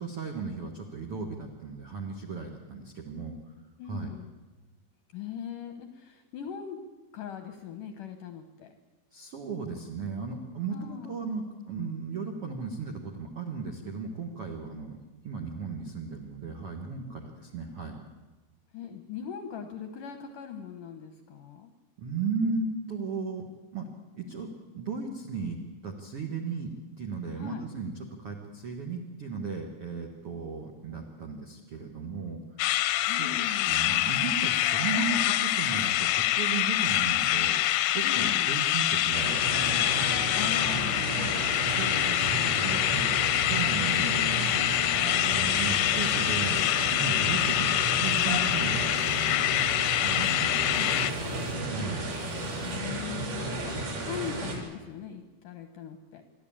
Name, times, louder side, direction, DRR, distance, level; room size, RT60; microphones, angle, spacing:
voice 1, 0.0-3.4 3.8-4.1 9.1-15.0 15.2-18.0 22.0-23.4 23.7-23.9 24.1-26.7 27.0-32.7 33.0-40.0 41.7-44.2 44.9-46.6 46.9-48.9 50.0-50.5 51.7-52.1, right 4 dB, 70° right, 2 dB, 1.3 m, -36 dB
voice 2, 3.8-4.3 5.1-6.8 7.1-8.7 10.7-11.2 18.7-21.7 27.4-27.6 33.1-33.8 38.0-38.6 40.3-41.4 43.9-44.7 50.2-50.3 50.6-51.6 52.6-53.8 54.0-56.2, left 8 dB, 70° left, 7 dB, 2.1 m, -40 dB
sound 1, 32.6-51.1, left 14 dB, 90° left, 3.2 m, -26 dB
sound 2, 39.1-54.6, right 2 dB, 50° right, 4.7 m, -33 dB
sound 3, 45.9-46.1 46.5-46.7 47.3-47.5 48.1-48.4 49.0-49.3 49.8-50.2 50.7-51.5 52.1-52.8, right 3 dB, 85° right, 6.1 m, -49 dB
26.5 x 11.5 x 8.7 m, 1.2 s
omnidirectional pair, 5.1 m